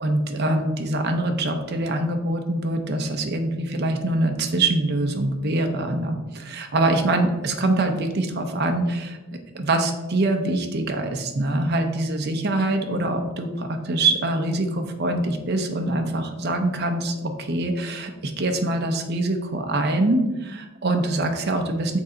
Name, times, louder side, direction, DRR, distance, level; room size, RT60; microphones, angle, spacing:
voice 1, 0.0-9.2 9.5-22.0, right 2 dB, 50° right, 5 dB, 0.7 m, -24 dB
6.1 x 3.9 x 4.4 m, 1.1 s
head